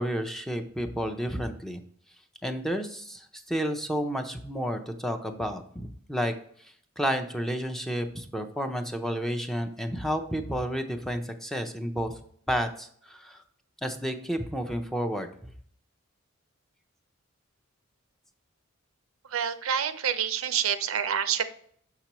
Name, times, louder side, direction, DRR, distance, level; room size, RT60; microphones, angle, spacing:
voice 1, 0.0-1.8 2.4-6.3 6.6-12.2 12.5-13.4 13.8-15.5, equal, ahead, 5 dB, 0.5 m, -31 dB
voice 2, 19.3-21.4, right 8 dB, 90° right, 11 dB, 0.6 m, -27 dB
6.7 x 5.7 x 2.9 m, 0.62 s
head